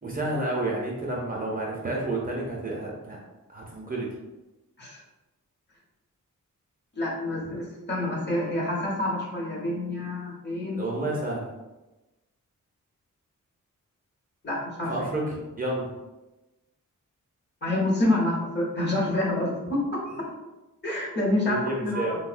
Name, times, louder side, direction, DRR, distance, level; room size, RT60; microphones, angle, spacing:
voice 1, 0.0-3.2 3.5-4.2 10.8-11.5 14.9-15.9 21.5-22.2, right 2 dB, 30° right, -3 dB, 0.5 m, -30 dB
voice 2, 6.9-10.9 14.4-15.1 17.6-20.3 20.8-22.2, left 1 dB, 35° left, -3 dB, 0.8 m, -27 dB
3.5 x 2.0 x 2.4 m, 1.1 s
wide cardioid pair, 135°, 31 cm